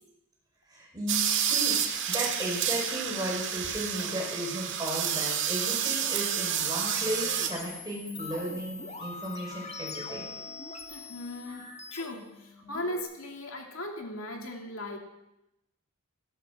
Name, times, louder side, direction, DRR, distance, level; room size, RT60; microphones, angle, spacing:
voice 1, 0.7-10.3 11.5-11.8, equal, 20° right, -2 dB, 5.5 m, -35 dB
sound 1, 1.1-7.5, right 9 dB, 55° right, 1.8 m, -29 dB
sound 2, 6.6-13.0, left 4 dB, 30° left, 2.1 m, -42 dB
voice 2, 10.9-15.0, left 1 dB, 65° left, 2 dB, 2.5 m, -38 dB
16.5 x 14.5 x 6.1 m, 0.91 s
head